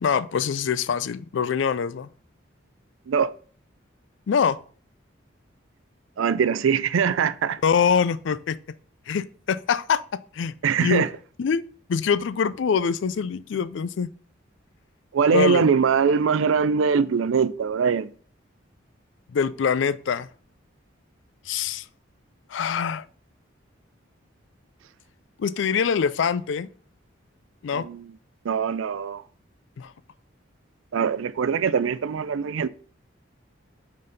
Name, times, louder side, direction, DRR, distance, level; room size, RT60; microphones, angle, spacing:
voice 1, 0.0-2.1 4.3-4.6 7.6-8.6 9.1-10.0 10.3-11.1 11.4-11.6 11.9-14.1 15.3-15.6 19.3-20.3 21.5-21.8 22.5-23.1 25.4-26.7 27.6-27.9 29.8-29.9, left 6 dB, 70° left, 0.4 m, -24 dB
voice 2, 6.2-7.6 10.6-11.1 15.1-18.1 27.7-28.1 28.5-29.2 30.9-32.7, right 6 dB, 85° right, 0.4 m, -22 dB
5.4 x 4.0 x 5.1 m
head